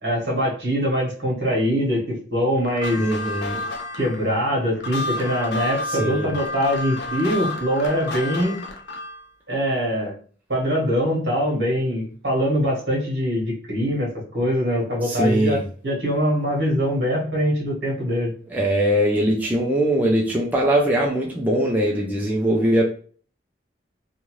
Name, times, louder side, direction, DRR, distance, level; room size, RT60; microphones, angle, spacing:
voice 1, 0.0-3.1 3.9-8.6 9.5-10.1 10.5-18.3, equal, 65° right, -2 dB, 1.2 m, -23 dB
sound 1, 2.6-9.2, left 2 dB, 70° left, 0.6 m, -31 dB
voice 2, 3.0-3.6 6.0-6.3 15.0-15.6 18.5-22.8, right 1 dB, 10° right, -2 dB, 0.4 m, -21 dB
2.7 x 2.4 x 3.0 m, 0.43 s
head